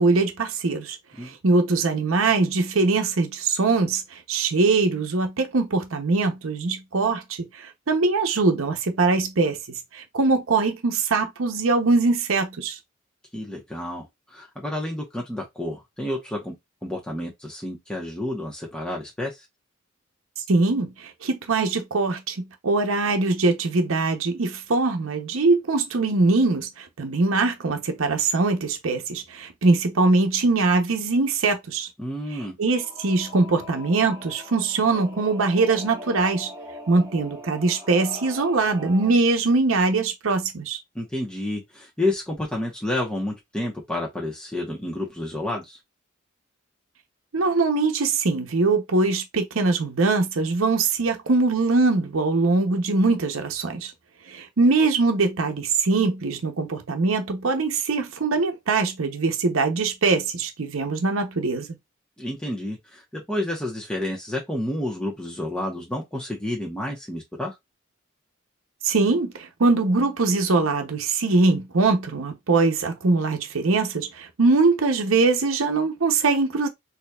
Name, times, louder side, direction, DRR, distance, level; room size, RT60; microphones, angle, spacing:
voice 1, 0.0-12.8 20.5-31.9 32.6-36.5 36.9-40.8 47.3-53.9 54.3-61.7 68.8-76.7, right 3 dB, 75° right, 0.7 m, -22 dB
voice 2, 13.3-16.5 16.8-19.4 32.0-32.6 40.9-45.8 62.2-67.5, left 1 dB, 5° left, 1.0 m, -30 dB
Singing / Musical instrument, 32.8-39.1, left 1 dB, 20° right, 1.4 m, -41 dB
4.1 x 2.8 x 2.3 m
head